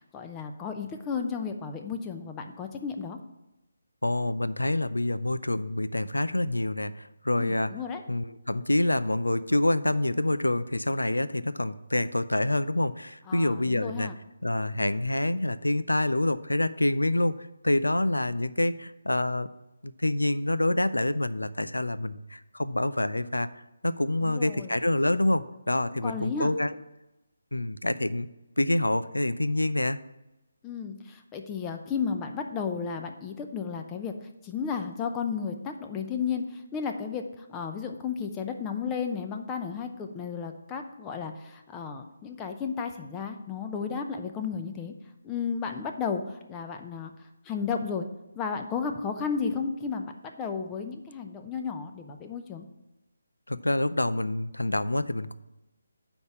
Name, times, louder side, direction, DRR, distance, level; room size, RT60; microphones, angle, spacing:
voice 1, 0.1-3.2 7.4-8.0 13.3-14.2 24.2-24.7 26.0-26.5 30.6-34.1 34.4-44.9 45.2-47.1 47.5-48.1 48.3-52.6, left 6 dB, 15° left, 5 dB, 0.7 m, -33 dB
voice 2, 4.0-7.7 8.1-14.1 14.4-19.5 19.8-23.5 23.8-26.7 27.5-28.3 28.6-30.0 53.5-55.3, left 1 dB, 85° left, 14 dB, 0.4 m, -27 dB
9.4 x 3.6 x 7.0 m, 0.98 s
figure-of-eight pair, 150°, 0 cm